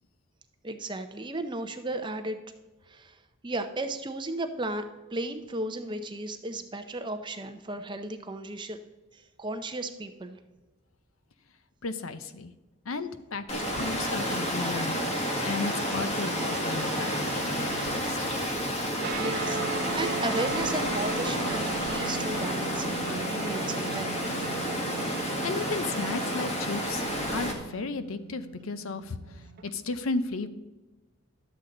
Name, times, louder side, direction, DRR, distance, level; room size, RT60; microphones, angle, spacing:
voice 1, 0.6-2.4 2.9-4.8 5.1-8.8 9.1-10.4 15.7-15.9 19.1-24.2, right 2 dB, 20° right, 7 dB, 0.6 m, -35 dB
voice 2, 11.8-12.5 12.9-15.1 15.4-18.2 25.2-27.0 27.3-29.2 29.6-30.5, left 3 dB, 75° left, 11 dB, 0.7 m, -34 dB
Water, 13.5-27.5, equal, 30° left, 1.6 m, -30 dB
sound 1, 19.0-29.7, right 4 dB, 45° right, 1.0 m, -38 dB
12.0 x 8.0 x 3.8 m, 1.1 s
head